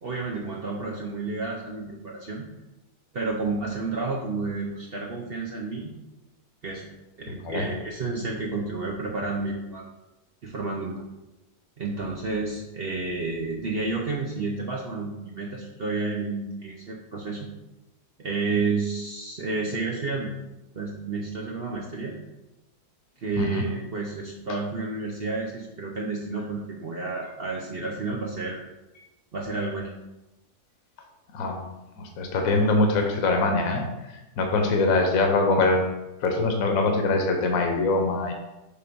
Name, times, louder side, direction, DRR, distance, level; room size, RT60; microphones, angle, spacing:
voice 1, 0.0-2.4 3.1-5.9 6.6-6.8 7.2-9.9 10.4-11.0 11.8-17.5 18.2-20.3 20.8-22.1 23.2-28.6 29.3-29.9, right 3 dB, 50° right, -2 dB, 0.8 m, -30 dB
voice 2, 7.3-7.7 23.4-23.7 24.5-24.6 31.3-31.6 32.0-35.9 36.2-38.3, left 2 dB, 60° left, 3 dB, 1.2 m, -23 dB
6.8 x 3.4 x 5.3 m, 0.99 s
omnidirectional pair, 1.7 m